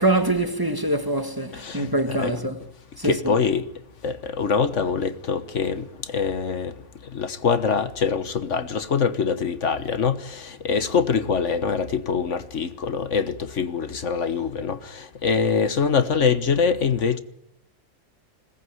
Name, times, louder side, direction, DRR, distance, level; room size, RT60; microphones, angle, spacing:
voice 1, 0.0-2.6 3.0-3.4, right 1 dB, 15° right, 1.6 m, -24 dB
voice 2, 1.5-2.3 3.0-3.7 4.0-6.7 7.1-17.2, left 6 dB, 65° left, 1.5 m, -24 dB
21.0 x 18.5 x 9.5 m
omnidirectional pair, 1.3 m